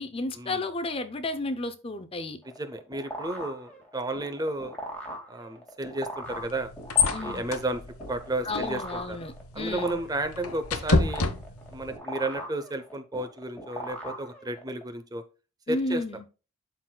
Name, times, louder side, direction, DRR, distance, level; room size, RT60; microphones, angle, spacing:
voice 1, 0.0-2.4 7.1-7.5 8.4-10.0 15.7-16.2, left 2 dB, 25° left, 0.6 m, -32 dB
sound 1, 2.4-14.8, equal, 5° left, 1.8 m, -40 dB
voice 2, 2.6-4.8 5.3-6.7 7.2-7.8 8.1-9.2 9.5-11.3 11.7-15.2 15.7-16.0, right 1 dB, 15° right, 0.6 m, -32 dB
sound 2, 6.2-12.0, left 4 dB, 85° left, 1.0 m, -30 dB
12.0 x 4.1 x 2.2 m
head